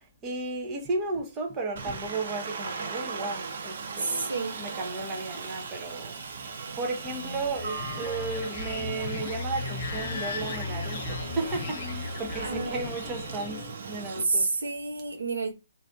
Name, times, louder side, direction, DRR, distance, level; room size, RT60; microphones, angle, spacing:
voice 1, 0.2-6.1 6.8-13.6 13.9-14.5, right 3 dB, 20° right, 0.8 m, -34 dB
Aircraft, 1.8-14.2, right 5 dB, 55° right, 0.6 m, -38 dB
voice 2, 4.0-4.6 12.4-12.7 14.2-15.5, right 3 dB, 75° right, 0.9 m, -29 dB
sound 1, 7.0-13.9, left 3 dB, 10° left, 0.9 m, -44 dB
sound 2, 7.1-13.7, left 4 dB, 50° left, 0.5 m, -37 dB
3.1 x 2.6 x 2.6 m
figure-of-eight pair, 135°, 0 cm